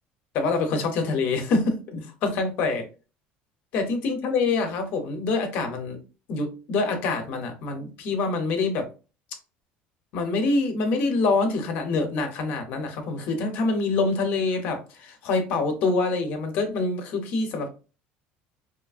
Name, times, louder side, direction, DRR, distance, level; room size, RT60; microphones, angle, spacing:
voice 1, 0.3-2.9 3.7-6.0 6.3-8.9 10.1-17.7, left 3 dB, 50° left, 5 dB, 0.6 m, -25 dB
2.9 x 2.4 x 2.3 m, 0.33 s
cardioid pair, 170°, 4 cm